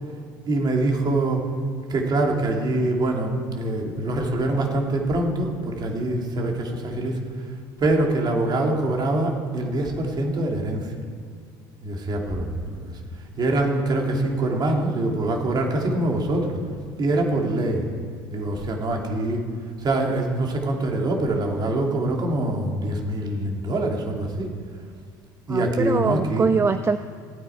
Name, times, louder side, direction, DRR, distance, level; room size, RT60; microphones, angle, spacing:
voice 1, 0.5-1.4 1.9-7.2 7.8-10.9 11.8-13.0 13.4-16.6 17.0-17.8 18.3-19.5 19.8-24.5 25.5-26.5, right 2 dB, 40° right, 1 dB, 2.6 m, -24 dB
voice 2, 25.5-27.0, right 5 dB, 25° right, 10 dB, 0.4 m, -22 dB
17.0 x 9.6 x 4.5 m, 2.3 s
supercardioid pair, 75°, 10 cm